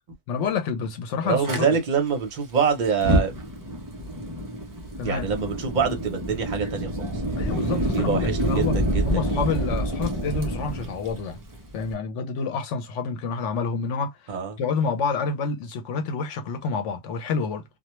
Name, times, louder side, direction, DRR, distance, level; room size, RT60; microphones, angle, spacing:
voice 1, 0.3-1.8 5.0-5.3 7.4-8.8 9.1-11.4 11.7-17.6, left 5 dB, 85° left, 1.0 m, -28 dB
voice 2, 1.2-3.3 5.0-7.1 7.9-9.3 14.3-14.6, right 6 dB, 45° right, 0.8 m, -25 dB
Fire, 1.4-1.6 2.9-11.9, right 1 dB, 25° right, 0.4 m, -27 dB
2.3 x 2.2 x 3.0 m
omnidirectional pair, 1.2 m